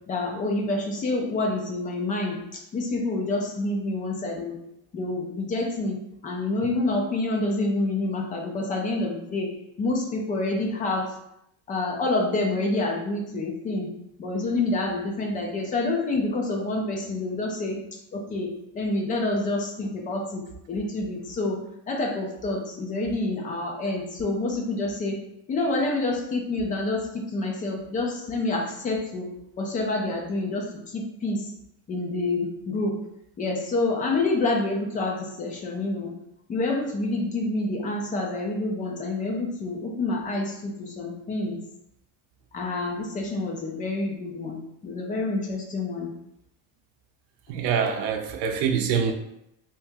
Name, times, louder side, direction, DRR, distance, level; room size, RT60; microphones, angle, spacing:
voice 1, 0.1-2.4 2.7-4.6 4.9-6.0 6.2-9.5 9.8-11.1 11.7-13.9 14.2-17.8 18.1-20.4 20.7-25.2 25.5-31.5 31.9-33.0 33.4-36.1 36.5-41.6 42.5-46.1, left 2 dB, 20° left, 0 dB, 0.3 m, -27 dB
voice 2, 47.5-49.1, right 7 dB, 80° right, 4 dB, 0.6 m, -25 dB
2.8 x 2.7 x 3.4 m, 0.80 s
cardioid pair, 175°, 42 cm